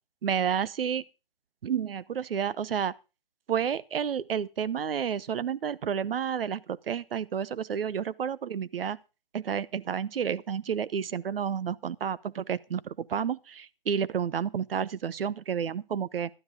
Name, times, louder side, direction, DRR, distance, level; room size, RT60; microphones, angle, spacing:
voice 1, 0.2-1.0 1.6-2.9 3.5-9.0 9.3-16.3, right 8 dB, 75° right, 0.8 m, -30 dB
12.0 x 9.7 x 5.0 m
hypercardioid pair, 150°, 29 cm